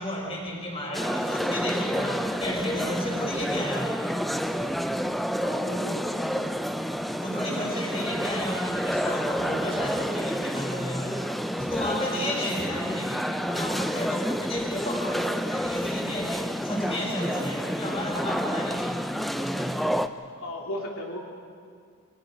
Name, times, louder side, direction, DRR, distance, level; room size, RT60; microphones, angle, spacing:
voice 1, 0.0-4.1 7.2-11.3 11.5-19.8, left 1 dB, 30° left, -2 dB, 5.3 m, -33 dB
sound 1, 0.9-20.1, equal, ahead, 0.5 m, -29 dB
voice 2, 5.4-6.5 20.4-21.2, left 1 dB, 80° left, -1 dB, 2.8 m, -36 dB
30.0 x 23.0 x 5.3 m, 2.1 s
head